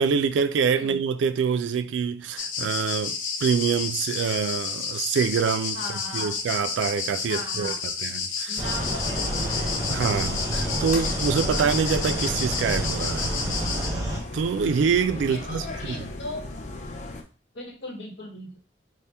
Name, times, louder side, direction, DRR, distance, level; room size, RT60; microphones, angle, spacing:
voice 1, 0.0-3.2 3.4-5.8 6.1-8.5 9.9-13.4 14.3-16.0, right 6 dB, 75° right, 0.3 m, -25 dB
sound 1, 2.4-13.9, left 5 dB, 90° left, 0.7 m, -31 dB
voice 2, 5.7-6.4 7.3-7.8 8.5-10.2 12.1-12.3 15.3-16.4 17.5-18.6, left 1 dB, 70° left, 1.0 m, -38 dB
sound 2, 8.6-14.2, right 1 dB, 20° right, 0.7 m, -30 dB
sound 3, 8.8-17.2, left 2 dB, 40° left, 0.5 m, -36 dB
4.2 x 2.0 x 3.3 m
head